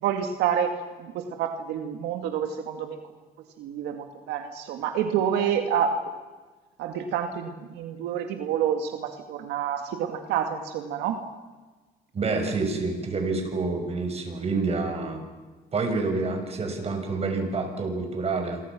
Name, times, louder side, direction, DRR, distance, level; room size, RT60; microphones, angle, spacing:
voice 1, 0.0-0.7 1.0-3.0 3.6-5.9 6.8-11.2, right 8 dB, 85° right, 6 dB, 2.3 m, -28 dB
voice 2, 12.1-15.2 15.7-18.6, right 3 dB, 35° right, 4 dB, 6.3 m, -28 dB
27.5 x 23.5 x 6.2 m, 1.3 s
cardioid pair, 110°, 17 cm